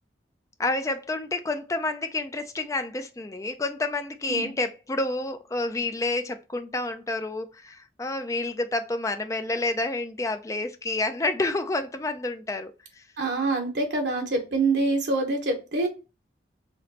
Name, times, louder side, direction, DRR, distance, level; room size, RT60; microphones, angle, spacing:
voice 1, 0.6-12.7, left 2 dB, 15° left, 0.4 m, -29 dB
voice 2, 13.2-15.9, right 3 dB, 75° right, 1.1 m, -25 dB
4.9 x 3.0 x 2.8 m
head